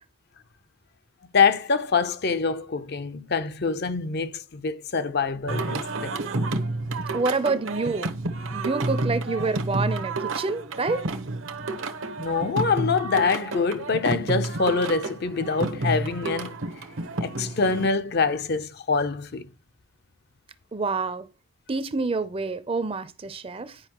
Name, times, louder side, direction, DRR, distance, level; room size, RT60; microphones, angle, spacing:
voice 1, 1.3-6.1 12.2-16.6 17.2-19.5, left 5 dB, 50° left, 0.6 m, -25 dB
Singing, 5.5-17.9, right 2 dB, 75° right, 0.9 m, -30 dB
voice 2, 7.1-8.1 8.5-11.1 20.7-21.3 21.7-23.8, right 3 dB, 25° right, 0.5 m, -27 dB
9.8 x 5.3 x 2.9 m
head